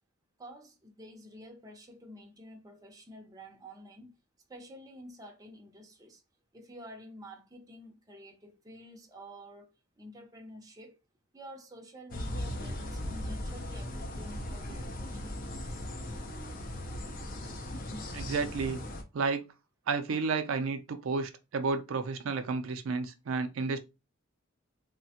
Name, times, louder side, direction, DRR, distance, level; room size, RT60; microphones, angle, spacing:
voice 1, 0.4-4.1 4.5-6.2 6.5-11.0 11.3-16.0, equal, 15° right, 0.5 m, -50 dB
sound 1, 12.1-19.0, left 1 dB, 40° left, 0.5 m, -38 dB
voice 2, 17.9-18.8 19.1-19.5 19.9-23.8, right 4 dB, 75° right, 0.4 m, -32 dB
3.1 x 2.1 x 2.7 m
head